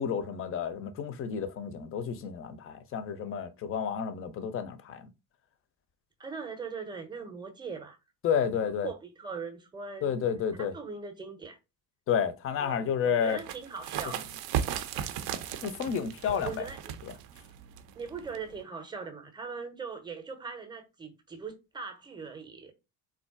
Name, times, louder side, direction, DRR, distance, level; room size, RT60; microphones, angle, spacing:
voice 1, 0.0-5.1 8.2-8.9 10.0-10.7 12.1-13.4 15.6-16.7 17.0-17.1, left 7 dB, 30° left, 0.5 m, -31 dB
voice 2, 6.2-8.0 8.5-10.1 10.6-11.6 12.6-14.2 16.3-16.8 17.9-22.7, right 5 dB, 10° right, 0.7 m, -40 dB
sound 1, 13.3-18.6, right 9 dB, 50° right, 0.6 m, -36 dB
3.6 x 2.2 x 2.4 m
figure-of-eight pair, 55°, 48 cm